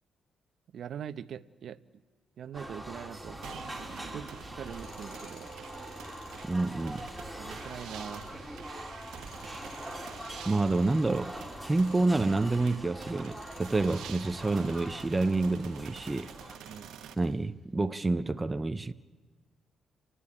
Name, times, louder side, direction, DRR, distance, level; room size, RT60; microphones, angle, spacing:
voice 1, 0.7-1.8 2.4-3.6 4.1-5.5 7.3-8.3 16.7-17.0, right 8 dB, 65° right, 0.8 m, -42 dB
sound 1, 2.5-16.6, right 1 dB, 5° left, 3.7 m, -43 dB
sound 2, 3.4-17.1, right 9 dB, 80° right, 1.2 m, -48 dB
Tools, 4.5-12.7 13.1-17.4, left 3 dB, 75° left, 4.8 m, -57 dB
voice 2, 6.4-7.0 10.5-11.4 11.6-16.3 17.2-18.9, right 2 dB, 20° right, 0.6 m, -28 dB
30.0 x 12.5 x 10.0 m
cardioid pair, 90°, 0 cm